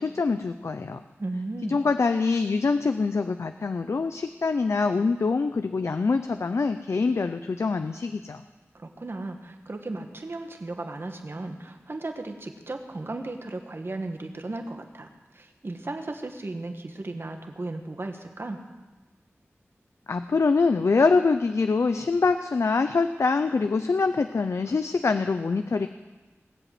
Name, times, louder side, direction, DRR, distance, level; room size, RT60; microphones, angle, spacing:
voice 1, 0.0-1.0 1.7-8.4 20.1-25.9, left 4 dB, 70° left, 9 dB, 0.6 m, -24 dB
voice 2, 1.2-1.8 8.7-15.1 15.3-18.6, right 2 dB, 50° right, 5 dB, 1.6 m, -35 dB
19.0 x 8.1 x 7.7 m, 1.2 s
wide cardioid pair, 80°, 5 cm